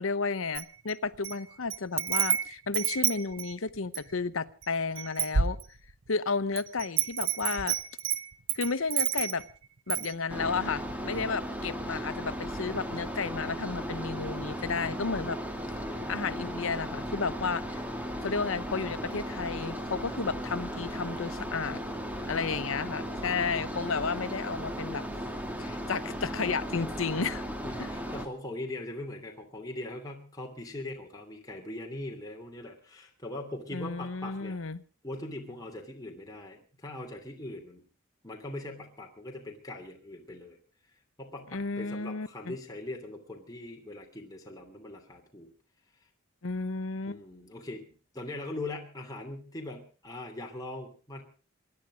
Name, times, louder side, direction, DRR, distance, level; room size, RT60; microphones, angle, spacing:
voice 1, 0.0-5.6 6.1-7.8 8.5-9.5 9.9-15.4 16.1-17.8 18.2-21.8 22.3-25.0 25.6-27.4 27.8-27.9 33.7-34.8 41.5-42.5 46.4-47.2, left 4 dB, 75° left, 14 dB, 0.9 m, -32 dB
Wind chime, 0.5-1.4 1.7-4.1 4.6-4.7 5.0-6.1 6.6-9.5 9.9-10.1, right 8 dB, 65° right, 0.9 m, -29 dB
sound 1, 10.3-28.3, equal, 5° right, 2.2 m, -36 dB
voice 2, 22.1-22.5 27.6-34.6 35.0-37.8 38.2-40.6 41.2-45.5 47.1-51.2, left 2 dB, 20° left, 0 dB, 3.0 m, -41 dB
26.0 x 11.0 x 5.1 m, 0.39 s
head